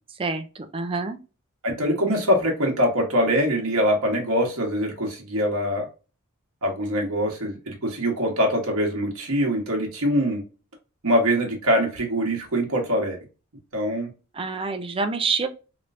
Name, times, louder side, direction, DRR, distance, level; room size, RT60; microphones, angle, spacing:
voice 1, 0.2-1.2 14.3-15.5, right 4 dB, 25° right, 0.4 m, -27 dB
voice 2, 1.6-5.9 6.6-10.4 11.0-13.2 13.7-14.1, equal, 65° right, 1.1 m, -23 dB
3.1 x 3.0 x 2.5 m
head